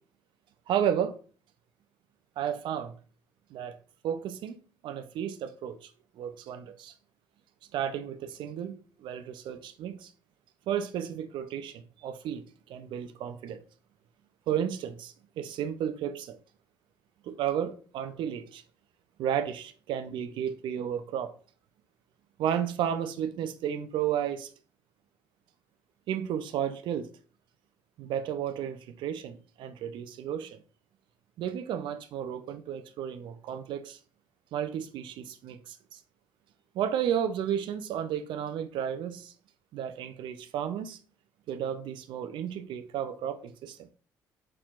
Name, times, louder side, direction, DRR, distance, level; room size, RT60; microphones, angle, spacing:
voice 1, 0.7-1.2 2.4-2.9 3.5-3.8 4.0-4.6 4.8-5.9 6.2-6.9 7.7-8.7 9.0-10.1 10.7-12.4 12.7-13.6 14.5-16.4 17.2-18.6 19.2-21.3 22.4-24.5 26.1-27.1 28.0-30.6 31.4-34.0 34.5-36.0 36.7-39.3 39.7-41.0 41.5-43.9, right 9 dB, 65° right, 0.5 m, -33 dB
4.4 x 4.2 x 2.5 m
hypercardioid pair, 55°, 9 cm